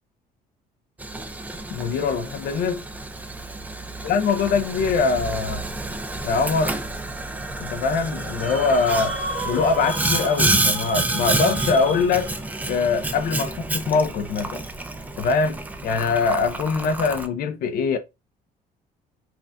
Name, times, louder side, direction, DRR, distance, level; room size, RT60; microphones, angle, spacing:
Boiling, 1.0-17.3, right 2 dB, 10° right, 0.4 m, -29 dB
voice 1, 1.7-2.9 4.0-5.6 6.2-6.8 7.6-9.1 9.4-12.3 12.7-14.6 15.2-18.0, left 4 dB, 60° left, 0.5 m, -23 dB
sound 1, 8.4-12.6, right 2 dB, 35° right, 1.0 m, -33 dB
5.7 x 2.3 x 2.5 m
cardioid pair, 110°, 17 cm